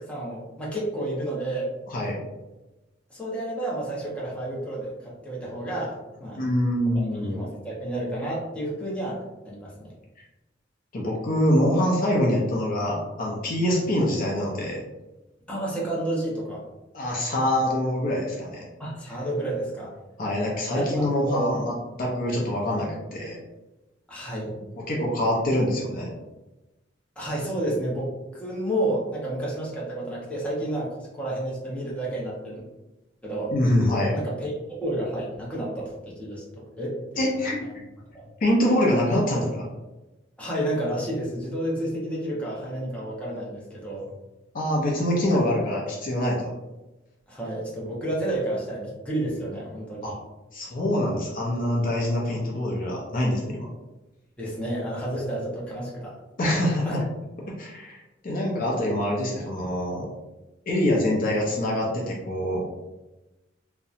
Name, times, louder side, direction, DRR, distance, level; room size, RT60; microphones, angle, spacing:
voice 1, 0.0-1.7 3.1-6.4 7.2-9.2 9.4-9.7 15.5-16.6 17.3-17.4 18.8-19.9 20.7-21.6 24.1-24.5 27.2-32.6 33.2-33.5 34.1-36.4 36.8-37.3 38.1-38.3 40.4-44.1 47.3-50.2 54.4-56.1 56.4-56.5 56.8-57.0, right 1 dB, 5° left, -6 dB, 0.7 m, -30 dB
voice 2, 6.3-7.5 10.9-14.8 16.9-18.6 20.2-21.7 22.0-23.4 24.9-26.1 33.5-34.1 37.2-37.6 38.4-39.7 44.5-46.5 50.0-50.1 50.5-53.7 56.4-57.0 57.5-60.1 60.7-62.7, left 1 dB, 45° left, -2 dB, 0.5 m, -25 dB
2.7 x 2.1 x 2.4 m, 1.0 s
head